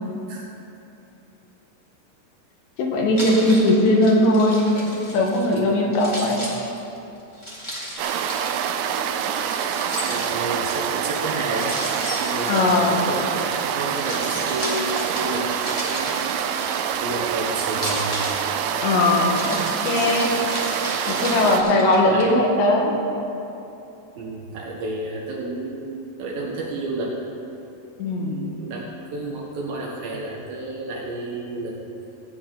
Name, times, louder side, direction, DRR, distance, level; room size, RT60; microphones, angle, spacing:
voice 1, 2.8-6.5 12.5-13.0 18.8-20.4 21.1-22.9 28.0-28.5, left 1 dB, 80° left, -1 dB, 3.6 m, -19 dB
Keys jangling, 3.1-5.6 5.9-8.7 9.5-10.7 11.5-13.4 13.8-17.2 17.7-22.2, equal, 40° left, 0.4 m, -34 dB
sound 1, 8.0-21.6, right 8 dB, 85° right, 2.2 m, -26 dB
voice 2, 10.0-11.8 12.2-16.3 17.0-18.1 20.0-20.5 21.2-21.9 22.1-22.4 24.2-27.2 28.2-31.8, right 2 dB, 70° right, -3 dB, 2.6 m, -31 dB
16.0 x 9.0 x 3.9 m, 2.9 s
omnidirectional pair, 5.0 m